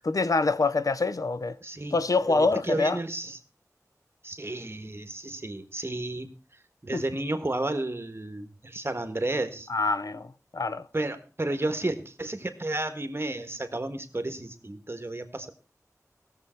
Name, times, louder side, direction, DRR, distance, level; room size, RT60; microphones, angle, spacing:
voice 1, 0.0-1.6 1.9-3.0 6.9-7.0 9.7-10.3 10.5-10.8, left 3 dB, 75° left, 0.6 m, -25 dB
voice 2, 1.6-2.0 2.3-3.4 4.2-9.7 10.9-15.5, right 2 dB, 40° right, 1.5 m, -32 dB
18.0 x 7.2 x 4.4 m
wide cardioid pair, 60°, 6 cm